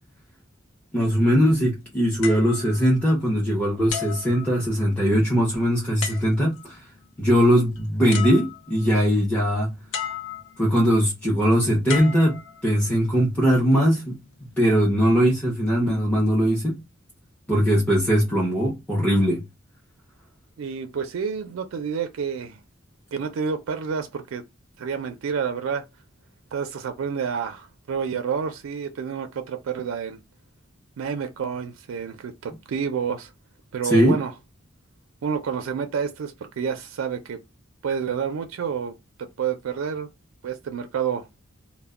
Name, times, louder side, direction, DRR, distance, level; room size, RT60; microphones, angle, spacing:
voice 1, 0.9-6.8 7.2-9.7 10.6-14.2 14.6-16.8 17.5-19.4 33.8-34.2, equal, 5° left, 0.6 m, -20 dB
sound 1, 2.2-3.4 3.9-5.1 6.0-6.7 7.8-7.9 8.1-8.9 9.9-10.7 11.9-13.0 13.7-14.0, left 7 dB, 80° left, 0.5 m, -35 dB
voice 2, 20.6-22.6 23.1-24.4 24.8-25.8 26.5-30.2 31.0-33.3 33.7-34.3 35.2-37.4 37.8-40.1 40.4-41.3, right 6 dB, 90° right, 0.4 m, -29 dB
2.1 x 2.1 x 3.5 m
head